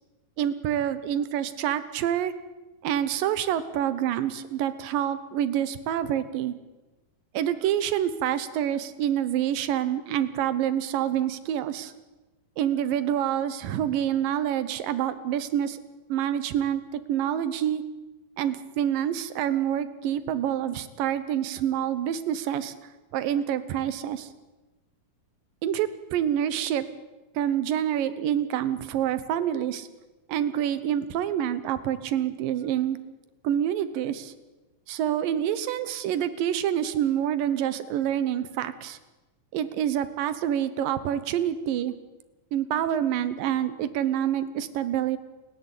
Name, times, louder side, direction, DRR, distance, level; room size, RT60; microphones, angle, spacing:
voice 1, 0.4-2.3 2.8-6.6 7.3-11.9 12.6-15.8 16.1-17.8 18.4-22.7 23.1-24.3 25.6-26.8 27.4-29.9 30.3-33.0 33.4-34.3 34.9-39.0 39.5-41.9 42.5-45.2, right 10 dB, 75° right, 13 dB, 2.7 m, -27 dB
29.0 x 11.0 x 8.5 m, 1.1 s
omnidirectional pair, 4.2 m